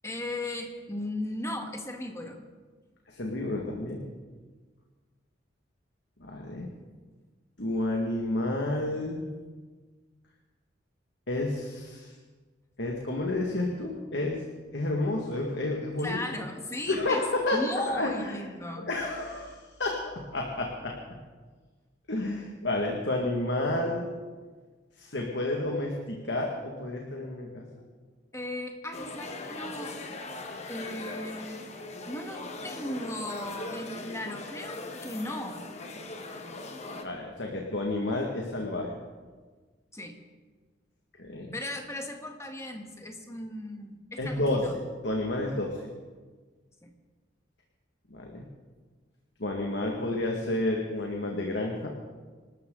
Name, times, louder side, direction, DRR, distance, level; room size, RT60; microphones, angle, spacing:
voice 1, 0.0-2.4 16.0-17.2 17.5-18.9 28.3-30.0 30.7-31.7 32.1-35.6 39.9-40.2 41.5-44.7 46.8-46.9, left 1 dB, 15° left, 3 dB, 1.7 m, -36 dB
voice 2, 3.1-4.1 6.2-6.7 7.6-9.3 11.3-12.1 12.8-14.4 14.7-16.2 16.9-18.4 18.8-20.0 20.3-20.9 22.1-24.1 25.0-27.6 37.0-39.0 41.2-41.5 44.2-45.8 48.1-48.4 49.4-51.9, left 2 dB, 70° left, 0 dB, 2.0 m, -30 dB
sound 1, 28.9-37.0, left 2 dB, 35° left, 1.4 m, -40 dB
26.5 x 13.0 x 3.9 m, 1.4 s
head